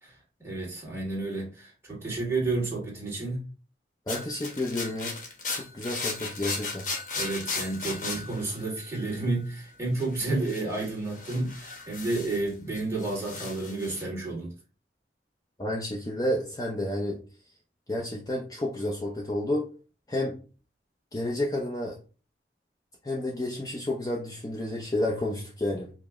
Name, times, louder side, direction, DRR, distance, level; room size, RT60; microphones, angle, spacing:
voice 1, 0.0-3.4 7.1-14.5, right 2 dB, 15° right, -4 dB, 1.6 m, -31 dB
sound 1, 4.1-9.3 10.0-12.5 12.7-14.0, left 3 dB, 45° left, 0.9 m, -36 dB
voice 2, 4.1-5.2 5.5-6.9 15.6-17.2 17.9-19.7 20.1-20.4 21.1-22.0 23.0-25.9, left 1 dB, 20° left, -2 dB, 0.5 m, -30 dB
5.0 x 2.0 x 3.4 m, 0.36 s
head